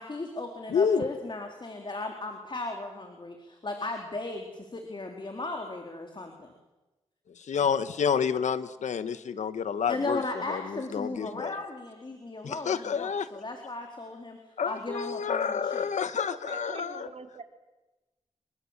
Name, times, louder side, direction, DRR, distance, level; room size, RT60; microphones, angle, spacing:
voice 1, 0.0-6.5 9.9-14.4 14.6-15.9, left 2 dB, 40° left, 3 dB, 3.9 m, -36 dB
voice 2, 0.7-1.0 7.4-11.5 12.4-13.3 14.6-17.1, left 6 dB, 90° left, 12 dB, 1.3 m, -29 dB
voice 3, 16.4-17.4, right 5 dB, 60° right, 4 dB, 3.4 m, -44 dB
25.5 x 25.0 x 7.5 m, 1.1 s
cardioid pair, 55°, 12 cm